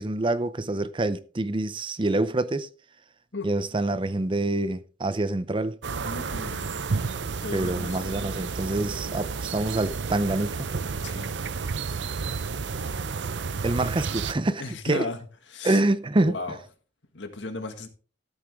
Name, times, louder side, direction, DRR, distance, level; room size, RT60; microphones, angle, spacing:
voice 1, 0.0-2.7 3.4-5.8 7.5-10.7 13.6-15.1 15.6-16.4, right 2 dB, 30° right, 0.6 m, -26 dB
sound 1, 5.8-14.3, right 5 dB, 70° right, 0.6 m, -31 dB
voice 2, 5.9-6.9 7.4-8.1 11.0-11.4 14.6-15.2 15.5-15.8 16.2-16.6 17.1-17.9, left 3 dB, 80° left, 1.8 m, -35 dB
13.0 x 8.0 x 3.6 m
head